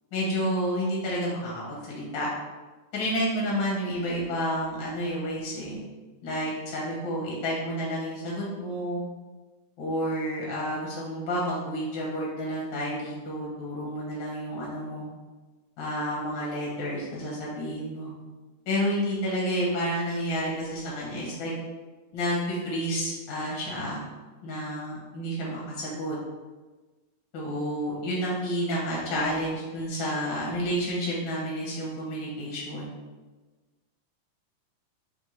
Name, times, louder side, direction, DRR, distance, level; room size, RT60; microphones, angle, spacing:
voice 1, 0.1-2.3 2.9-5.8 6.2-9.0 9.8-15.1 15.8-18.1 18.7-21.5 22.1-24.0 24.4-26.1 27.3-32.9, equal, 80° left, -5 dB, 1.1 m, -30 dB
5.3 x 2.6 x 3.1 m, 1.3 s
omnidirectional pair, 3.8 m